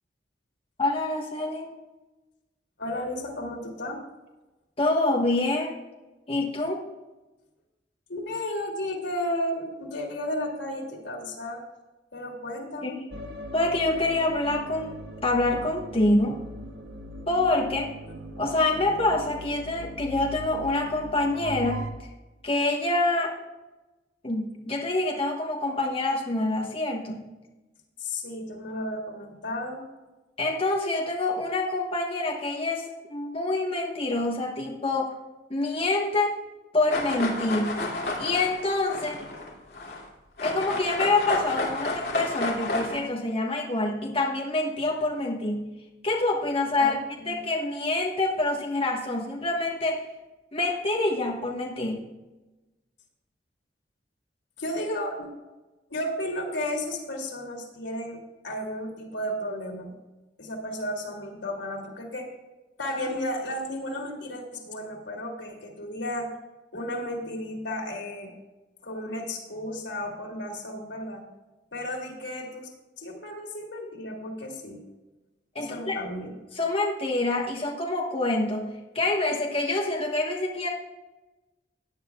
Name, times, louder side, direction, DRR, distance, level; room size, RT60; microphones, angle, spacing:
voice 1, 0.8-1.7 4.8-5.7 6.3-6.8 12.8-13.0 13.5-16.4 17.3-17.9 18.4-21.9 22.4-23.3 24.2-27.2 30.4-35.1 35.5-36.4 36.7-37.8 38.2-39.2 40.4-45.7 46.0-47.0 47.3-50.0 50.5-52.0 75.5-76.0 76.5-80.7, left 2 dB, 30° left, -1 dB, 1.2 m, -26 dB
voice 2, 2.8-4.0 8.1-11.6 12.1-13.0 28.0-29.9 46.8-47.3 54.6-55.3 55.9-59.9 60.4-62.3 62.8-66.3 66.7-68.3 68.8-71.2 71.7-72.7 73.0-74.8 75.6-76.4, left 1 dB, 90° left, 0 dB, 2.6 m, -33 dB
sound 1, 13.1-21.9, equal, 90° right, 1.1 m, -40 dB
sound 2, 36.9-40.1 40.4-43.0, left 2 dB, 60° left, 2.4 m, -31 dB
16.5 x 9.6 x 2.3 m, 1.1 s
head